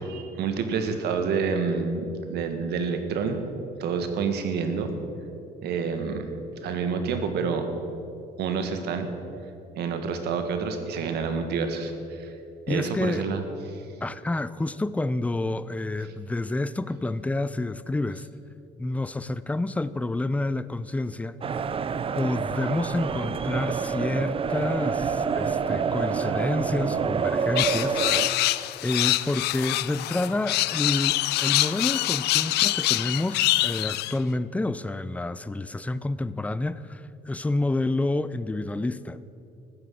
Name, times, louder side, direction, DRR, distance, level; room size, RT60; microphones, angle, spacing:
voice 1, 0.0-3.4 3.8-4.9 5.6-6.3 6.6-7.7 8.4-9.1 9.8-12.3 12.7-13.4 13.7-13.8, right 5 dB, 75° right, 1.7 m, -28 dB
voice 2, 12.7-13.3 14.0-18.3 18.8-21.4 22.2-28.0 28.8-39.2, left 2 dB, 10° left, 0.5 m, -29 dB
sound 1, 21.4-28.3, right 6 dB, 35° right, 0.6 m, -27 dB
sound 2, 27.6-34.1, left 17 dB, 80° left, 0.5 m, -25 dB
14.5 x 9.6 x 7.8 m
cardioid pair, 110°, 17 cm